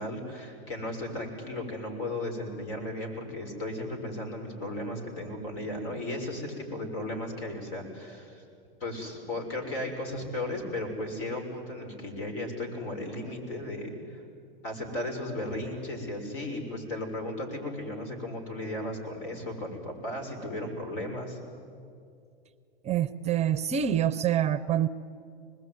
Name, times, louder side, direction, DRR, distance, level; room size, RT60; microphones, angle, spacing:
voice 1, 0.0-8.4 8.8-14.2 14.6-21.4, left 1 dB, 65° left, 4 dB, 6.4 m, -35 dB
voice 2, 22.8-24.9, right 10 dB, 20° right, 15 dB, 0.6 m, -26 dB
25.5 x 20.5 x 9.5 m, 2.4 s
hypercardioid pair, 115°, 29 cm